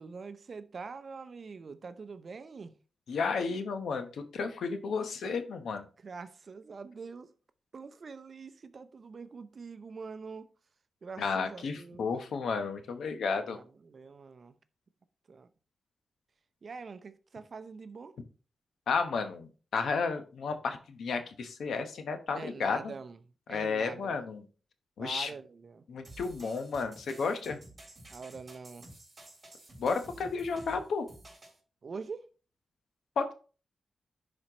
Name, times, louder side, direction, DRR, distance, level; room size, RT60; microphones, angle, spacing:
voice 1, 0.0-2.8 6.0-7.3 7.7-10.5 11.0-12.1 13.5-14.6 15.3-15.5 16.6-18.2 22.3-23.2 23.5-24.2 25.0-25.9 28.1-28.9 31.8-32.3, right 5 dB, 50° right, 0.6 m, -44 dB
voice 2, 3.1-5.9 11.2-13.6 18.9-22.9 23.5-24.4 25.0-25.3 25.9-27.6 29.8-31.1 33.2-33.3, left 5 dB, 85° left, 1.0 m, -32 dB
sound 1, 26.0-31.6, right 1 dB, 25° right, 3.8 m, -51 dB
11.0 x 4.3 x 3.0 m
wide cardioid pair, 100°, 0 cm